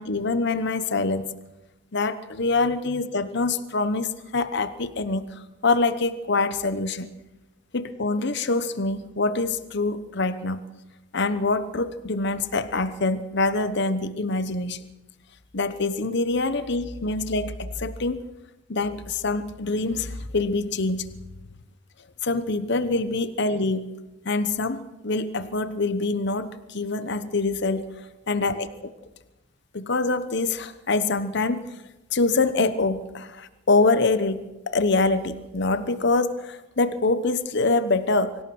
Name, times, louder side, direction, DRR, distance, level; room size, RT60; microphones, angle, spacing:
voice 1, 0.0-1.3 1.9-7.1 7.7-10.6 11.1-14.8 15.5-18.2 18.7-21.0 22.2-23.9 24.2-28.9 29.7-31.6 32.1-38.4, left 3 dB, 60° left, 12 dB, 1.0 m, -25 dB
24.5 x 18.0 x 6.3 m, 1.0 s
head